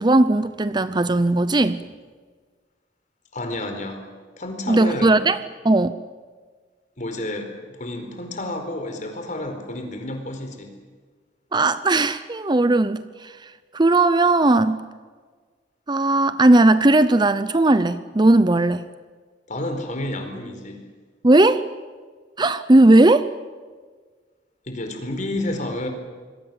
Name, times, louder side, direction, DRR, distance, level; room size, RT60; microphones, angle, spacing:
voice 1, 0.0-1.8 4.7-5.4 5.6-5.9 11.5-13.3 13.7-14.8 15.9-18.9 21.2-21.6 22.4-23.3, right 2 dB, 25° right, 13 dB, 0.7 m, -17 dB
voice 2, 3.3-4.0 4.4-5.2 7.0-10.7 19.5-20.8 24.7-25.9, left 1 dB, 45° left, 5 dB, 4.6 m, -30 dB
26.5 x 22.0 x 7.6 m, 1.5 s
head